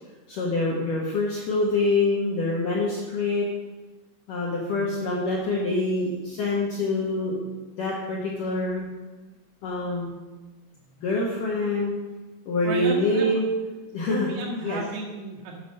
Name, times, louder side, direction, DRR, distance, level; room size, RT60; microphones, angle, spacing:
voice 1, 0.3-3.5 4.3-7.4 7.8-8.8 9.6-10.2 11.0-11.9 12.5-13.4 13.9-14.3 14.6-14.8, left 2 dB, 70° left, -4 dB, 2.0 m, -25 dB
voice 2, 12.6-13.4 14.1-15.6, right 2 dB, 85° right, -2 dB, 4.6 m, -33 dB
10.5 x 5.9 x 6.4 m, 1.2 s
omnidirectional pair, 5.9 m